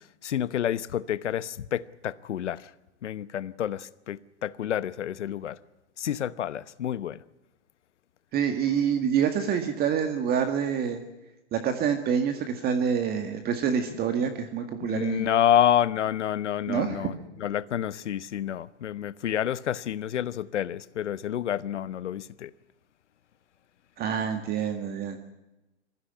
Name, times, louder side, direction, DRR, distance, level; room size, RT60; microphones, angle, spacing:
voice 1, 0.2-2.6 3.0-5.6 6.0-7.2 14.8-17.1 17.4-22.5, left 10 dB, 85° left, 1.0 m, -28 dB
voice 2, 8.3-11.0 11.5-15.3 16.7-17.1 24.0-25.2, right 7 dB, 25° right, 1.9 m, -27 dB
22.5 x 15.0 x 9.9 m
hypercardioid pair, 135°, 35 cm